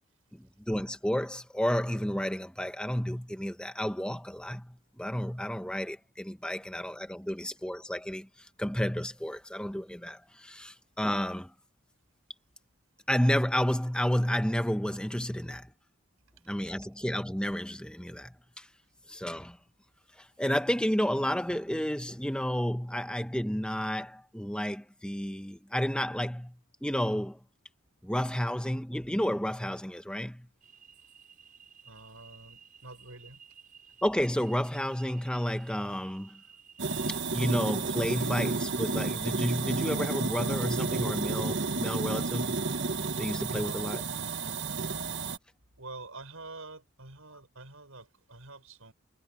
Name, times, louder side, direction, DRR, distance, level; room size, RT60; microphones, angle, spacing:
voice 1, 0.3-11.5 13.1-15.7 16.5-18.7 19.1-19.6 20.2-27.4 28.0-30.5 34.0-36.4 37.1-42.6 43.2-44.0, equal, 5° left, 1.4 m, -31 dB
sound 1, 30.6-37.2, right 7 dB, 40° right, 5.8 m, -55 dB
voice 2, 31.8-33.4 43.6-44.9 45.8-48.9, right 2 dB, 85° right, 6.4 m, -47 dB
sound 2, 36.8-45.4, right 3 dB, 60° right, 1.4 m, -31 dB
head